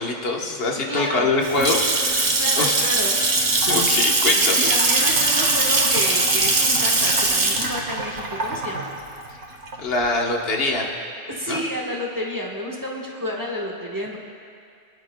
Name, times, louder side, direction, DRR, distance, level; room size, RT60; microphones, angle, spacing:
voice 1, 0.0-2.8 3.7-4.7 9.8-10.9 11.5-11.6, left 2 dB, 65° left, 0 dB, 1.4 m, -24 dB
voice 2, 0.9-1.3 2.4-3.1 3.9-4.0 4.5-8.9 11.3-14.2, equal, 20° right, -2 dB, 1.2 m, -30 dB
Water tap faucet / Sink (filling or washing) / Splash splatter, 1.2-10.1, right 2 dB, 80° right, 1.5 m, -21 dB
24.5 x 10.0 x 2.2 m, 2.3 s
omnidirectional pair, 1.1 m